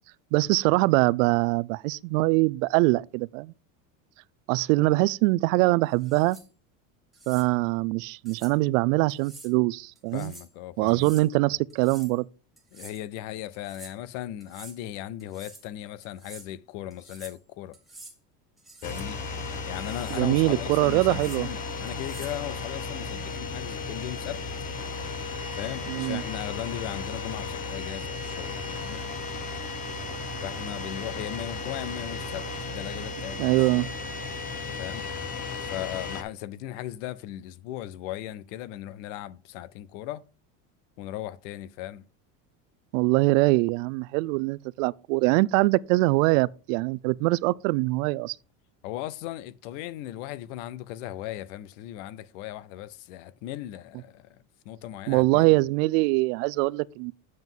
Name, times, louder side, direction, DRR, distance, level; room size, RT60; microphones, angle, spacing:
voice 1, 0.3-3.5 4.5-6.4 7.3-10.3 10.8-12.3 20.1-21.5 25.9-26.2 33.4-33.9 42.9-48.4 55.1-57.1, right 22 dB, 85° right, 0.5 m, -23 dB
sound 1, 5.9-6.5 7.1-7.5 8.3-8.6 9.1-9.5 10.0-10.5 10.9-11.3 11.7-12.2 12.6-13.0 13.5-13.9 14.4-14.8 15.2-15.7 16.0-16.5 16.9-17.4 17.7-18.2 18.6-19.1 19.5-20.3 21.0-21.4 21.9-22.4, right 3 dB, ahead, 1.3 m, -48 dB
voice 2, 10.1-11.1 12.7-17.8 18.8-19.2 19.7-24.4 25.5-29.0 30.4-33.9 34.8-35.0 35.6-40.2 41.0-42.0 48.8-54.3 54.6-55.6, left 13 dB, 70° left, 0.7 m, -37 dB
sound 2, 18.8-36.2, left 4 dB, 20° left, 0.8 m, -35 dB
7.8 x 7.3 x 3.8 m
cardioid pair, 180°, 39 cm